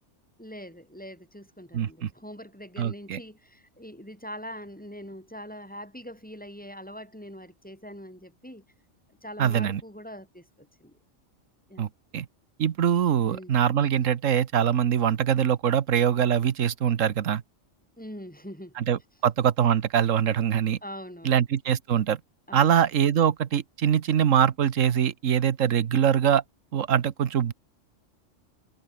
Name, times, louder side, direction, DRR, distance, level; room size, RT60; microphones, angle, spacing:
voice 1, 0.4-8.6 9.2-11.0 11.7-11.9 13.1-13.6 18.0-18.8 20.8-21.4 22.5-22.8, equal, 5° left, 7.4 m, -43 dB
voice 2, 1.7-2.1 2.8-3.2 9.4-9.8 11.8-11.9 12.1-12.3 12.6-17.4 18.8-20.8 21.2-22.2 22.5-26.4 26.7-27.5, right 9 dB, 80° right, 1.4 m, -23 dB
omnidirectional pair, 1.3 m